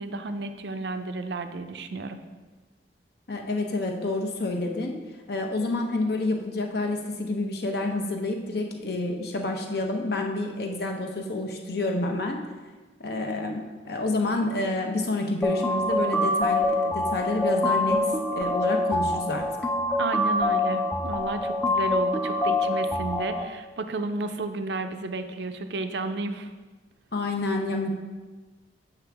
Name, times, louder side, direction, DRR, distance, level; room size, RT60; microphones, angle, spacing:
voice 1, 0.0-2.2 20.0-26.5, right 2 dB, 65° right, 8 dB, 0.5 m, -32 dB
voice 2, 3.3-4.9 5.3-12.4 13.0-18.0 18.3-19.5 27.1-27.9, left 2 dB, 60° left, 3 dB, 0.9 m, -28 dB
sound 1, 15.4-23.4, left 1 dB, 10° left, 0.4 m, -25 dB
7.8 x 6.0 x 3.4 m, 1.3 s
head